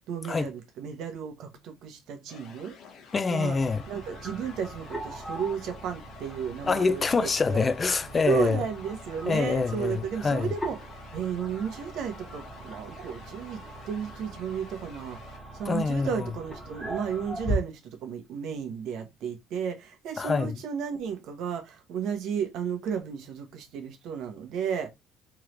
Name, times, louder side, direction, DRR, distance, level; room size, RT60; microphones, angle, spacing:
voice 1, 0.1-2.8 3.3-3.6 3.9-7.7 8.2-24.9, right 7 dB, 70° right, 1.1 m, -33 dB
sound 1, 2.3-15.4, left 6 dB, 65° left, 1.0 m, -52 dB
voice 2, 3.1-3.8 6.7-8.6 9.3-10.5 15.7-16.1 20.2-20.6, left 4 dB, 25° left, 0.3 m, -25 dB
sound 2, 3.5-17.6, right 1 dB, 5° left, 1.6 m, -39 dB
3.6 x 3.1 x 3.2 m
cardioid pair, 115°, 0 cm